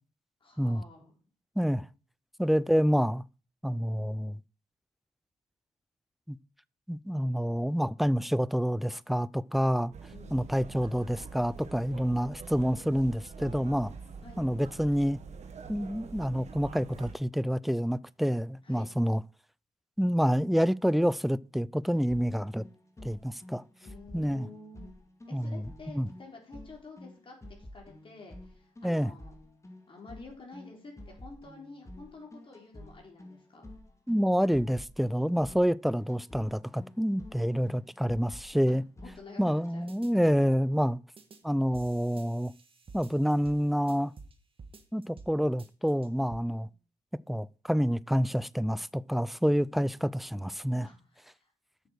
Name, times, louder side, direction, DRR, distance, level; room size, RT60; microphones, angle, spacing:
voice 1, 0.4-1.1 10.1-10.5 14.2-14.4 18.6-19.0 23.8-24.9 25.3-29.4 29.9-33.7 38.7-39.9 46.5-46.8 50.8-51.5, left 3 dB, 45° left, 3.7 m, -50 dB
voice 2, 1.6-1.9 2.4-3.2 3.6-4.4 6.3-6.4 6.9-9.9 10.3-13.9 14.4-15.2 15.7-19.2 20.0-22.6 23.0-23.6 24.1-24.5 25.3-25.6 26.0-26.1 28.8-29.1 34.1-38.8 39.4-41.0 41.4-42.5 42.9-44.1 44.9-46.7 47.3-50.9, equal, ahead, 0.4 m, -28 dB
sound 1, 9.9-17.1, right 5 dB, 60° right, 1.6 m, -45 dB
sound 2, 22.1-39.8, left 1 dB, 25° left, 2.1 m, -50 dB
sound 3, 39.9-40.1 41.2-41.4 41.7-44.3 44.6-45.3 45.6-46.4, right 4 dB, 45° right, 1.8 m, -51 dB
8.0 x 6.5 x 6.3 m
cardioid pair, 65°, 13 cm